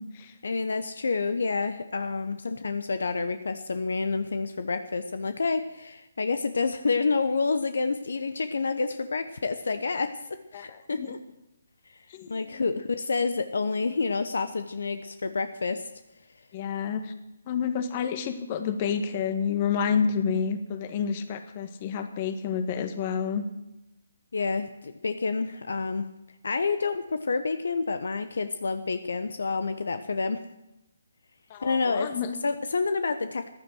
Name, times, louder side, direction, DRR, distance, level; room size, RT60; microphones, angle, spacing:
voice 1, 0.4-10.1 10.5-11.2 12.3-15.9 24.3-26.1 26.4-30.4 31.6-32.1 32.4-33.5, left 4 dB, 65° left, 10 dB, 1.0 m, -28 dB
voice 2, 10.5-11.2 12.1-12.7 16.5-17.1 17.5-23.4 31.5-32.3, left 7 dB, 30° left, 9 dB, 1.5 m, -29 dB
15.0 x 11.5 x 6.3 m, 0.92 s
figure-of-eight pair, 145°, 0 cm